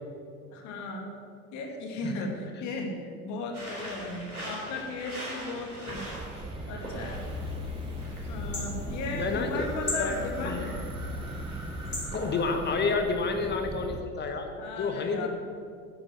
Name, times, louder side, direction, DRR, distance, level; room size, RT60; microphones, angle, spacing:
voice 1, 0.5-1.2 1.5-2.3 2.6-6.0 6.7-7.2 8.3-10.6 14.6-15.3, left 2 dB, 40° left, 2 dB, 2.3 m, -36 dB
sound 1, 3.5-12.8, right 1 dB, 85° right, 3.6 m, -43 dB
sound 2, 5.9-14.0, right 3 dB, 10° right, 0.8 m, -39 dB
sound 3, 7.1-12.1, left 4 dB, 85° left, 2.4 m, -38 dB
voice 2, 9.1-9.5 9.8-10.1 10.4-10.7 12.1-14.5 14.8-15.3, left 4 dB, 25° left, 5 dB, 1.3 m, -30 dB
10.5 x 9.4 x 7.7 m, 2.3 s
figure-of-eight pair, 75°, 43 cm